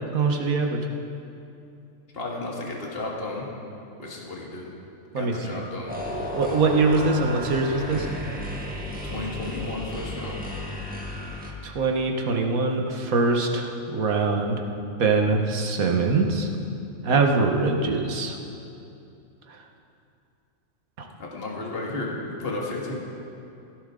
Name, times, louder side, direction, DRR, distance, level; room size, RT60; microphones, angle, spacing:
voice 1, 0.1-0.8 5.1-5.7 6.3-8.1 11.6-14.6 15.0-16.5 17.0-18.4 21.0-21.1, right 3 dB, 85° right, 2 dB, 1.7 m, -23 dB
voice 2, 2.1-3.5 4.0-4.7 5.2-6.0 9.0-10.4 21.0-23.0, left 2 dB, 45° left, -2 dB, 2.1 m, -33 dB
sound 1, 5.9-11.5, equal, 5° right, 1.4 m, -33 dB
17.0 x 16.0 x 3.8 m, 2.7 s
omnidirectional pair, 1.4 m